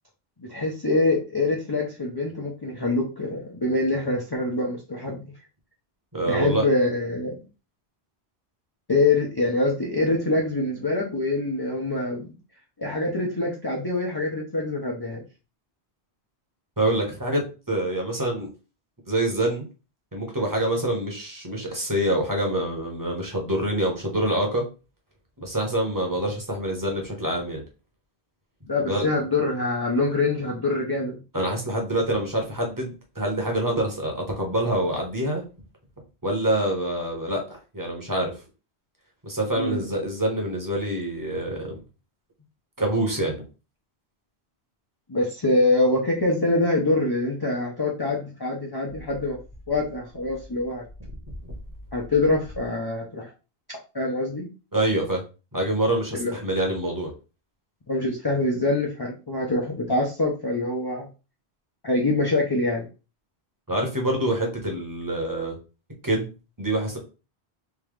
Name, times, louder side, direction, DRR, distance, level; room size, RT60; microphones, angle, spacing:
voice 1, 0.4-5.2 6.3-7.4 8.9-12.3 12.8-15.2 28.7-31.2 39.6-39.8 45.1-49.4 49.7-50.8 51.9-53.3 53.7-54.5 56.1-56.4 57.9-61.1 61.8-62.9, left 2 dB, 25° left, -2 dB, 0.7 m, -25 dB
voice 2, 6.1-6.6 16.8-18.5 19.1-19.6 20.1-24.6 25.4-27.6 28.9-29.0 31.3-35.4 36.2-38.4 39.2-41.8 42.8-43.4 51.4-51.5 54.7-55.2 55.5-57.1 63.7-65.6 66.0-66.3 66.6-67.0, right 1 dB, 20° right, 0 dB, 1.1 m, -26 dB
3.6 x 2.9 x 3.2 m, 0.32 s
omnidirectional pair, 1.1 m